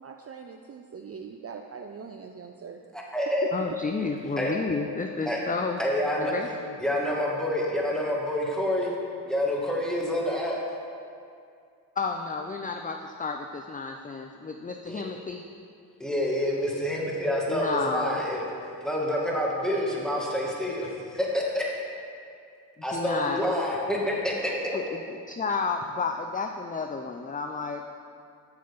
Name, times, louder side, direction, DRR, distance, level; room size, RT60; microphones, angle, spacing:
voice 1, 0.0-2.8, right 6 dB, 35° right, 3 dB, 0.6 m, -42 dB
voice 2, 2.9-3.4 4.4-4.5 5.3-5.4 5.8-6.3 6.8-8.9 9.2-10.6 14.9-15.0 16.0-18.4 18.8-21.7 22.8-24.8, left 1 dB, ahead, -4 dB, 2.2 m, -27 dB
voice 3, 3.5-5.8 6.2-6.7 12.0-15.4 17.5-18.2 22.8-23.4 24.7-27.8, left 4 dB, 20° left, 4 dB, 0.5 m, -31 dB
8.3 x 6.4 x 5.4 m, 2.4 s
supercardioid pair, 40°, 44 cm